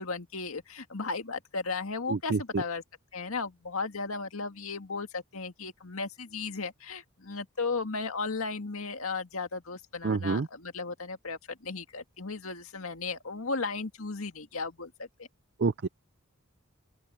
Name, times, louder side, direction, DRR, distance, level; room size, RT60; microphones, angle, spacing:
voice 1, 0.0-2.8 3.1-15.3, left 4 dB, 75° left, 2.0 m, -35 dB
voice 2, 2.1-2.6 10.0-10.5 15.6-15.9, right 4 dB, 50° right, 0.5 m, -28 dB
open air
head